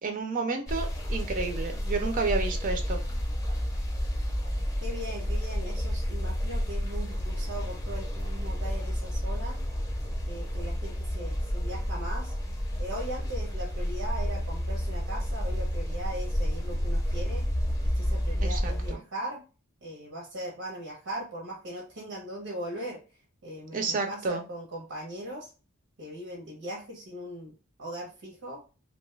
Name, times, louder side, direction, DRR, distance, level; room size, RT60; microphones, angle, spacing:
voice 1, 0.0-3.0 18.4-19.0 23.7-24.4, right 4 dB, 40° right, 5 dB, 0.4 m, -31 dB
sound 1, 0.7-18.9, equal, 15° left, 0.5 m, -30 dB
voice 2, 4.8-9.6 10.3-12.3 12.8-17.5 17.8-19.4 19.8-23.0 23.4-25.5 26.0-27.5 27.8-28.6, right 1 dB, 80° right, -2 dB, 0.8 m, -39 dB
2.6 x 2.2 x 3.1 m, 0.33 s
head